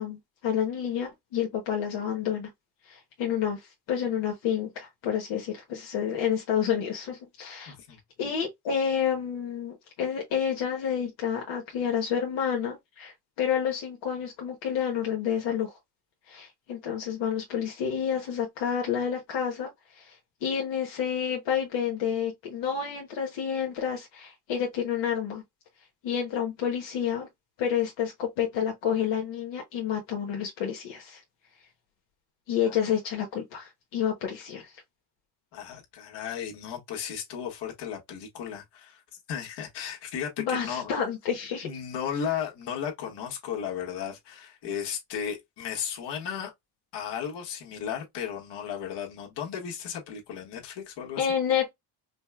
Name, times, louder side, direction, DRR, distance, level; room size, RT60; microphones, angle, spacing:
voice 1, 0.0-2.5 2.9-7.7 8.2-15.7 16.3-25.4 26.0-27.3 27.6-31.2 32.5-34.7 40.4-41.8 51.2-51.7, left 8 dB, 90° left, 1.3 m, -29 dB
voice 2, 7.7-8.0 32.6-32.7 35.5-39.0 39.3-40.9 41.6-46.5 46.9-51.3, left 8 dB, 70° left, 1.6 m, -35 dB
5.1 x 2.2 x 2.3 m
cardioid pair, 160°, 42 cm